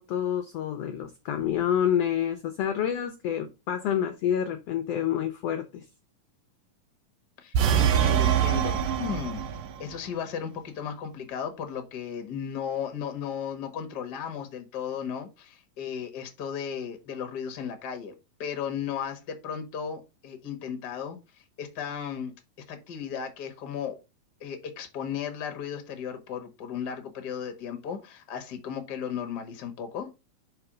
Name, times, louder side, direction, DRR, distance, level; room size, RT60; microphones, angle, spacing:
voice 1, 0.0-5.8, left 9 dB, 75° left, 8 dB, 1.4 m, -28 dB
voice 2, 7.4-9.4 9.8-18.1 18.4-22.3 22.7-24.0 24.4-30.1, left 8 dB, 50° left, 6 dB, 1.2 m, -35 dB
sound 1, 7.5-9.8, right 9 dB, 80° right, 2.4 m, -24 dB
5.4 x 4.7 x 4.9 m, 0.26 s
omnidirectional pair, 3.8 m